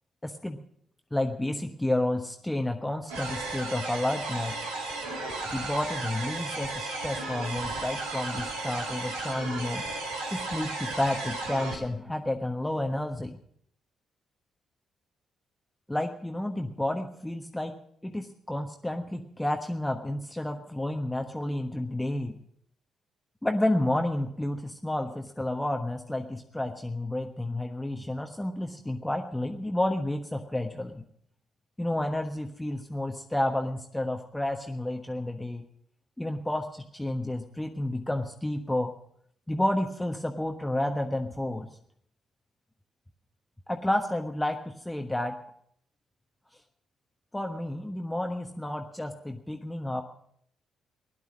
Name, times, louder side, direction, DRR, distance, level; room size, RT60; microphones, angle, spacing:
voice 1, 0.2-0.6 1.1-4.5 5.5-9.8 10.3-13.4 15.9-17.8 18.0-22.4 23.4-31.0 31.8-35.6 36.2-38.9 39.5-41.7 43.7-45.4 47.3-50.0, left 1 dB, 10° left, 4 dB, 1.3 m, -30 dB
sound 1, 3.1-11.8, right 2 dB, 80° right, 2.3 m, -34 dB
17.0 x 11.0 x 6.3 m, 0.68 s
figure-of-eight pair, 40°, 0 cm